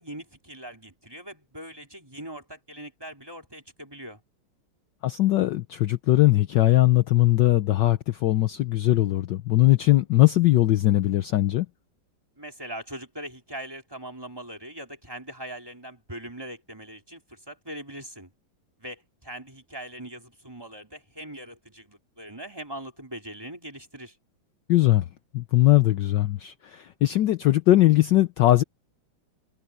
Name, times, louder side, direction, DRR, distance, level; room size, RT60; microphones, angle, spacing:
voice 1, 0.0-4.2 12.4-18.3 18.8-24.2, right 1 dB, 10° right, 3.9 m, -41 dB
voice 2, 5.0-11.7 24.7-25.0 25.3-28.6, left 15 dB, 65° left, 1.3 m, -20 dB
omnidirectional pair, 2.3 m